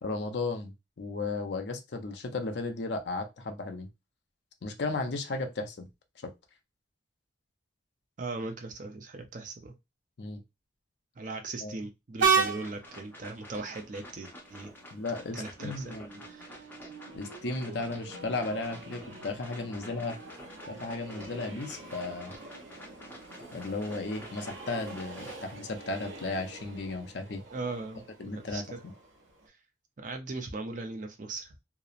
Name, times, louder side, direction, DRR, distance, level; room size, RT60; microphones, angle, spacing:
voice 1, 0.0-3.9 4.6-5.9 6.2-6.3 10.2-10.4 11.6-11.7 14.9-16.2 17.1-20.2 20.7-22.3 23.5-27.4 28.2-28.9, left 3 dB, 60° left, 5 dB, 0.5 m, -35 dB
voice 2, 8.2-9.7 11.2-14.7 15.3-15.9 16.2-16.7 27.5-28.8 30.0-31.5, right 3 dB, 45° right, 5 dB, 0.5 m, -39 dB
sound 1, 12.2-25.4, left 1 dB, 10° left, 0.6 m, -50 dB
Train, 12.2-29.5, right 6 dB, 90° right, 0.7 m, -37 dB
2.8 x 2.0 x 2.4 m, 0.22 s
head